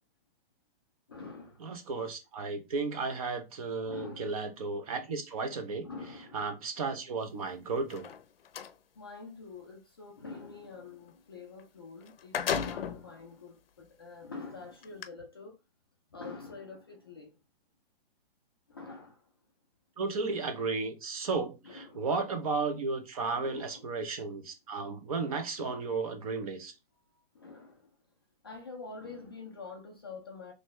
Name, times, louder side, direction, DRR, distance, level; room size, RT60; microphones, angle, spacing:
voice 1, 1.1-1.8 3.8-4.4 5.8-6.5 9.0-15.6 16.1-17.4 18.7-19.3 21.6-22.1 23.4-24.0 25.6-25.9 27.0-28.0 28.4-30.5, left 4 dB, 25° left, 0.4 m, -46 dB
voice 2, 1.6-5.9 6.3-8.1 20.0-26.7, right 4 dB, 35° right, 0.8 m, -34 dB
sound 1, 7.8-8.7 11.6-11.7 12.0-13.1 13.8-13.9 14.8-15.1, left 8 dB, 70° left, 0.7 m, -34 dB
4.0 x 3.3 x 3.1 m
hypercardioid pair, 170°, 30 cm